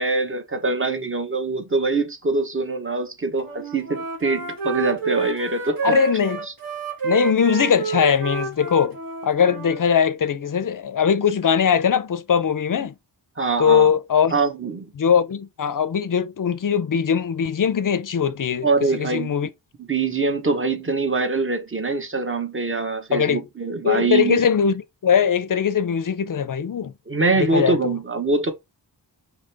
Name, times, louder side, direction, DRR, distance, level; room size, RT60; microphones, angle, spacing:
voice 1, 0.0-5.9 13.4-13.9 14.3-14.9 18.6-19.3 19.9-24.4 27.1-28.5, right 3 dB, 30° right, 1.0 m, -23 dB
Wind instrument woodwind instrument, 3.4-9.8, right 4 dB, 50° right, 1.3 m, -28 dB
voice 2, 5.8-6.5 7.0-9.0 9.2-12.9 13.6-14.4 15.0-18.7 18.9-19.5 23.1-23.4 23.8-26.9 27.4-27.9, left 7 dB, 45° left, 0.6 m, -20 dB
5.0 x 3.0 x 3.3 m
wide cardioid pair, 85°, 44 cm